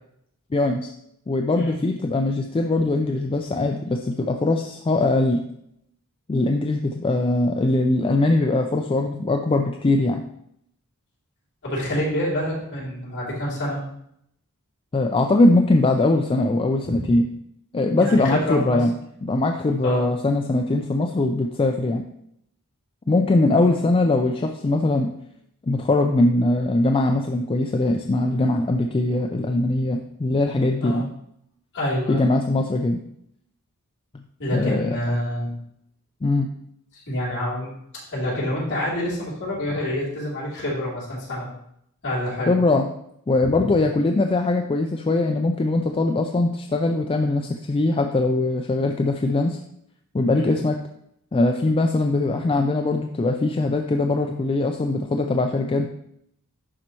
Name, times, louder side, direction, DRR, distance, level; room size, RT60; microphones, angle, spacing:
voice 1, 0.5-0.9 1.3-5.4 6.3-10.2 14.9-17.3 17.7-18.9 19.2-22.0 23.1-25.1 25.7-31.1 32.1-33.0 34.5-35.0 36.2-36.5 42.5-42.9 43.3-49.6 50.1-50.8 51.3-55.9, left 2 dB, 25° left, 3 dB, 0.3 m, -21 dB
voice 2, 11.6-13.8 16.8-17.1 18.0-18.8 19.8-20.1 23.6-23.7 30.8-31.0 31.7-32.3 34.4-35.5 36.9-37.7 38.1-41.5 42.0-42.5 43.4-43.7 50.3-50.5 52.4-52.5, equal, 55° left, -6 dB, 3.1 m, -27 dB
11.0 x 4.4 x 3.0 m, 0.75 s
head